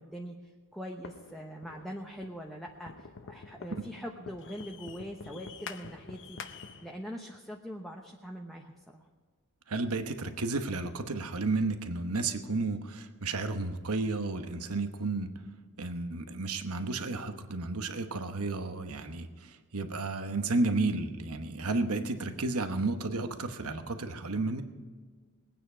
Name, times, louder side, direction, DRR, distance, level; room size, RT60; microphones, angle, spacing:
voice 1, 0.0-6.4 6.8-9.1, equal, ahead, 0 dB, 0.9 m, -43 dB
sound 1, 1.0-7.0, left 5 dB, 55° left, 0.8 m, -47 dB
voice 2, 9.7-15.4 15.8-24.6, right 3 dB, 70° right, 8 dB, 1.1 m, -32 dB
21.0 x 9.2 x 5.0 m, 1.5 s
head